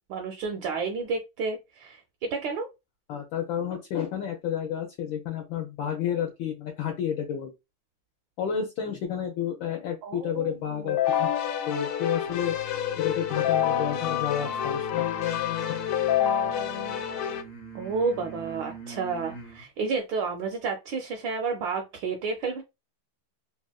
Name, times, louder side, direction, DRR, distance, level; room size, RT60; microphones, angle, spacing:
voice 1, 0.1-2.7 10.0-11.1 17.7-22.6, right 4 dB, 75° right, 1.2 m, -31 dB
voice 2, 3.1-7.5 8.4-11.3 11.7-12.5 13.0-15.1 15.7-15.8, left 9 dB, 75° left, 1.3 m, -31 dB
Keyboard (musical), 10.9-17.4, left 10 dB, 90° left, 1.5 m, -27 dB
sound 1, 12.3-19.6, right 2 dB, 45° left, 1.2 m, -43 dB
3.4 x 2.4 x 2.3 m
omnidirectional pair, 2.4 m